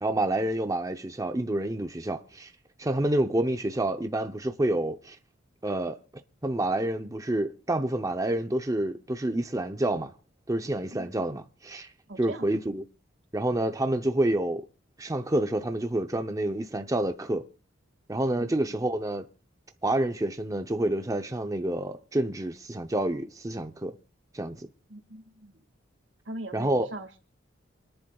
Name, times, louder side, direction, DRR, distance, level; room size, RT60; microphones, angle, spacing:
voice 1, 0.0-2.5 2.8-5.2 5.6-6.0 6.4-10.1 10.5-11.9 12.2-12.8 13.3-14.6 15.0-17.4 18.1-19.3 19.8-23.9 24.3-24.7 26.5-26.9, right 1 dB, 20° right, 0.6 m, -28 dB
voice 2, 12.1-12.6 18.3-18.9 24.9-25.6 26.2-27.2, right 1 dB, 75° right, 1.8 m, -41 dB
28.5 x 10.5 x 2.3 m
head